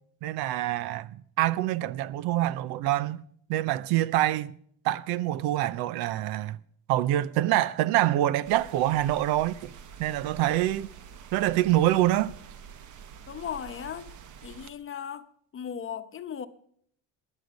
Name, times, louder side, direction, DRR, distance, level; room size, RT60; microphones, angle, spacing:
voice 1, 0.2-3.2 3.5-4.5 4.8-6.6 6.9-9.7 10.0-10.9 11.3-12.3, right 14 dB, 75° right, 0.8 m, -25 dB
sound 1, 8.4-14.7, right 7 dB, 50° right, 1.1 m, -47 dB
voice 2, 13.3-14.1 14.4-15.3 15.5-16.5, left 8 dB, 35° left, 0.9 m, -36 dB
19.5 x 10.0 x 5.2 m
cardioid pair, 115°, 38 cm